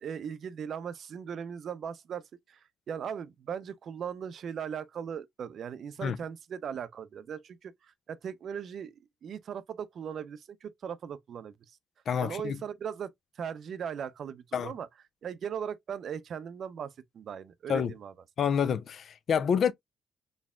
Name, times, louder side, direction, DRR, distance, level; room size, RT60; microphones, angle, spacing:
voice 1, 0.0-2.6 2.9-7.7 8.1-8.9 9.2-11.5 12.2-14.9 15.2-18.1, right 7 dB, 60° right, 0.5 m, -38 dB
voice 2, 12.1-12.6 14.5-14.7 17.7-17.9 18.4-19.7, left 7 dB, 60° left, 0.4 m, -28 dB
4.3 x 3.3 x 2.2 m
cardioid pair, 90°, 0 cm